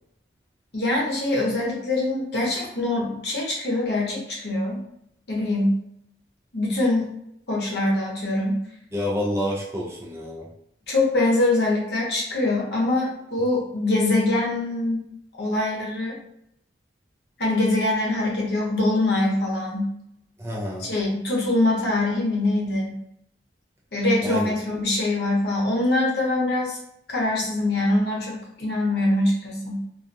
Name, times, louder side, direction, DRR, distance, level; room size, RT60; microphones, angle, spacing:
voice 1, 0.7-4.8 5.3-5.8 6.5-7.1 7.5-8.6 10.9-15.1 15.4-16.2 17.4-19.9 20.9-23.0 23.9-26.8 27.1-29.8, left 2 dB, 70° left, -3 dB, 0.9 m, -23 dB
voice 2, 8.9-10.5 20.4-20.9 24.2-24.5, left 1 dB, 15° right, -4 dB, 0.4 m, -28 dB
2.4 x 2.3 x 2.6 m, 0.77 s
head